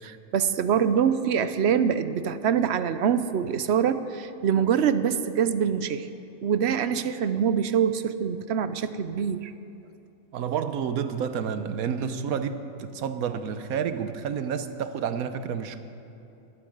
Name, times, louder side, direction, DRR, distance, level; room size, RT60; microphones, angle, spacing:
voice 1, 0.3-6.1 6.4-9.5, right 8 dB, 60° right, 12 dB, 0.8 m, -24 dB
voice 2, 10.3-15.8, right 7 dB, 80° right, 10 dB, 1.3 m, -30 dB
12.0 x 12.0 x 8.0 m, 2.9 s
omnidirectional pair, 1.5 m